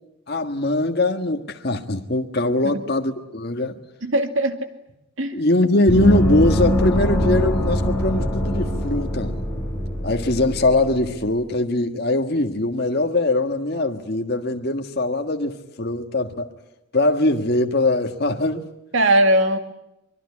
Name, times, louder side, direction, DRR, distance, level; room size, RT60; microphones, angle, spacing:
voice 1, 0.3-3.8 5.3-9.3 10.0-16.5 16.9-18.7, left 2 dB, 50° left, 1.6 m, -21 dB
voice 2, 4.0-4.6 5.2-5.4 18.9-19.6, right 1 dB, 70° right, 2.3 m, -19 dB
Gong, 5.9-11.1, equal, 5° left, 7.9 m, -22 dB
24.5 x 22.0 x 9.7 m
head